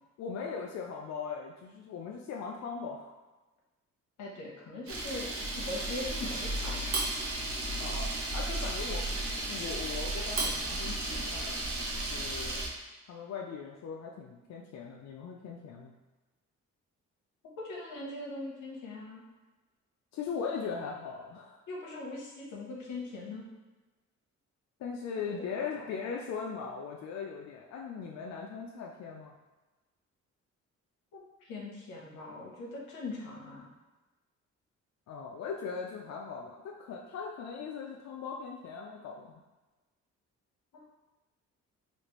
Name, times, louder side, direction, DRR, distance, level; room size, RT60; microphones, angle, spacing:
voice 1, 0.2-3.2 7.8-11.6 11.9-12.6 13.1-16.0 20.1-21.6 24.8-29.3 35.1-39.4, left 5 dB, 60° left, -1 dB, 0.4 m, -39 dB
voice 2, 4.2-6.8 17.6-19.2 21.7-23.5 25.3-25.8 31.1-33.7 40.7-40.9, left 2 dB, 85° left, -2 dB, 0.9 m, -41 dB
Camera, 4.9-12.7, right 2 dB, 50° right, 0.8 m, -34 dB
3.1 x 2.4 x 3.0 m, 1.2 s
cardioid pair, 90°, 30 cm